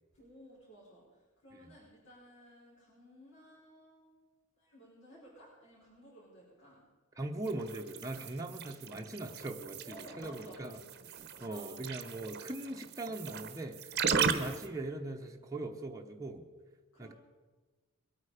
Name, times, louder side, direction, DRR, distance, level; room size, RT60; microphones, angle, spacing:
voice 1, 0.1-4.1 4.6-6.8 8.5-8.6 9.8-10.8 11.5-11.9 14.3-14.6 16.9-17.1, equal, 70° left, -8 dB, 4.9 m, -55 dB
voice 2, 7.2-10.8 11.4-16.5 17.0-17.1, right 2 dB, 15° right, 1 dB, 0.9 m, -40 dB
sound 1, 7.4-14.7, right 6 dB, 50° right, 0.9 m, -37 dB
22.0 x 8.9 x 5.0 m, 1.3 s
head